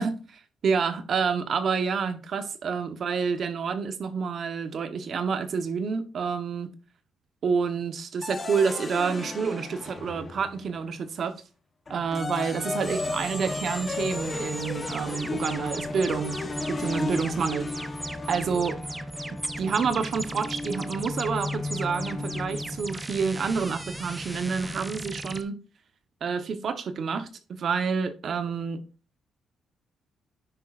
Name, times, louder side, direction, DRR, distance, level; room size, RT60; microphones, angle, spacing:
voice 1, 0.0-6.7 7.4-11.3 11.9-16.4 16.7-17.7 18.3-18.7 19.6-25.6 26.2-28.8, right 5 dB, 55° right, 1.0 m, -28 dB
sound 1, 8.2-10.8 11.9-23.0, left 3 dB, 30° left, 1.0 m, -35 dB
sound 2, 12.8-25.4, right 1 dB, 10° right, 0.6 m, -37 dB
10.0 x 6.1 x 2.5 m
cardioid pair, 90°, 0 cm